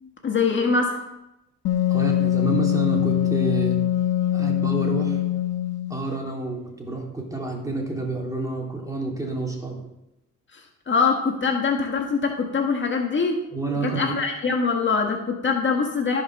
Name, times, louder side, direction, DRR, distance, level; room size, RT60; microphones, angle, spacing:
voice 1, 0.0-1.0 10.5-13.4 13.8-16.2, left 4 dB, 40° left, 2 dB, 1.6 m, -23 dB
Wind instrument woodwind instrument, 1.6-6.1, left 12 dB, 80° left, 1.0 m, -23 dB
voice 2, 1.9-3.8 4.3-5.2 5.9-9.8 13.5-14.2, right 3 dB, 10° right, -1 dB, 3.2 m, -29 dB
14.5 x 5.7 x 6.3 m, 0.90 s
cardioid pair, 90°, 30 cm